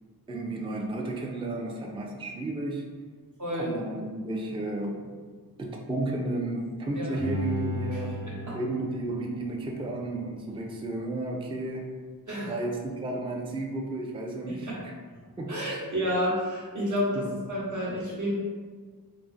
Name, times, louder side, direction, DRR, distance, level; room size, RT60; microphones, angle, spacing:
voice 1, 0.3-2.9 3.5-5.2 5.6-8.3 8.5-12.0 12.4-14.9 15.4-15.8 17.1-17.3, right 2 dB, 15° right, 0 dB, 0.3 m, -33 dB
voice 2, 3.4-3.7 7.0-7.2 8.5-8.6 12.3-12.5 14.5-14.8 15.5-18.3, equal, 55° right, -5 dB, 1.0 m, -30 dB
Bowed string instrument, 7.1-10.3 10.7-10.8, left 1 dB, 85° right, 0.9 m, -36 dB
2.3 x 2.0 x 3.8 m, 1.5 s
wide cardioid pair, 55°, 37 cm